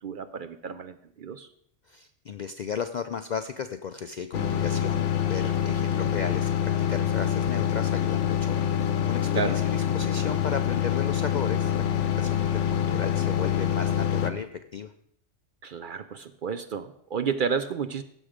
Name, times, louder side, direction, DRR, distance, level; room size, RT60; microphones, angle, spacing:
voice 1, 0.0-1.5 9.3-9.6 12.3-12.5 15.6-18.0, right 6 dB, 60° right, 11 dB, 0.6 m, -31 dB
voice 2, 1.9-14.9, left 6 dB, 60° left, 9 dB, 0.4 m, -35 dB
sound 1, 4.3-14.3, left 9 dB, 75° left, 1.1 m, -26 dB
15.5 x 6.3 x 5.0 m, 0.70 s
omnidirectional pair, 1.2 m